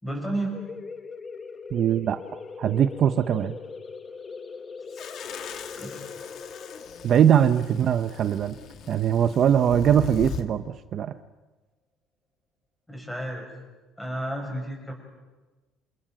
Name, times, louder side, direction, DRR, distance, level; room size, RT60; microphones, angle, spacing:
voice 1, 0.0-0.6 5.1-5.3 5.8-6.1 12.9-13.5 14.0-14.9, right 1 dB, 5° left, 2 dB, 6.9 m, -32 dB
sound 1, 0.5-9.9, left 4 dB, 20° left, 1.6 m, -41 dB
voice 2, 1.7-3.5 7.0-8.6 8.9-11.1, right 9 dB, 40° right, 10 dB, 0.8 m, -22 dB
sound 2, 4.9-10.4, left 7 dB, 45° left, 2.1 m, -39 dB
28.0 x 27.5 x 7.6 m, 1.2 s
cardioid pair, 165°, 0 cm